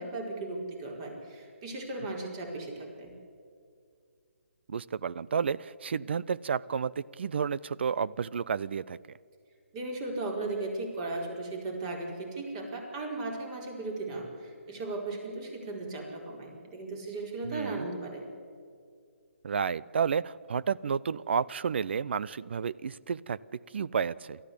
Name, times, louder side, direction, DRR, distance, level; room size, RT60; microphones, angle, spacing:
voice 1, 0.0-3.1 9.7-18.2, right 2 dB, 30° right, 1 dB, 4.6 m, -36 dB
voice 2, 4.7-9.0 17.4-17.9 19.4-24.4, right 6 dB, 55° right, 19 dB, 0.5 m, -31 dB
28.0 x 13.5 x 8.5 m, 2.3 s
figure-of-eight pair, 145°, 7 cm